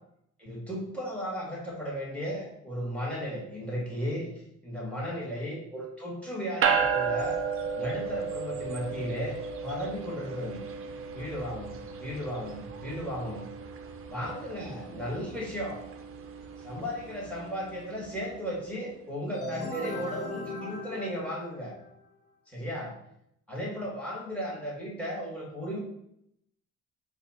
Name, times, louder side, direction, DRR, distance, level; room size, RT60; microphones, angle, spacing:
voice 1, 0.4-4.3 4.6-7.4 7.8-10.6 11.1-11.7 12.0-13.5 14.1-15.8 16.6-21.7 22.5-22.9 23.5-25.8, equal, 5° left, -3 dB, 1.6 m, -35 dB
sound 1, 6.6-18.2, right 6 dB, 50° right, 0.5 m, -34 dB
sound 2, 19.3-22.0, left 2 dB, 55° left, 1.2 m, -38 dB
4.3 x 2.4 x 4.1 m, 0.77 s
cardioid pair, 90°, 30 cm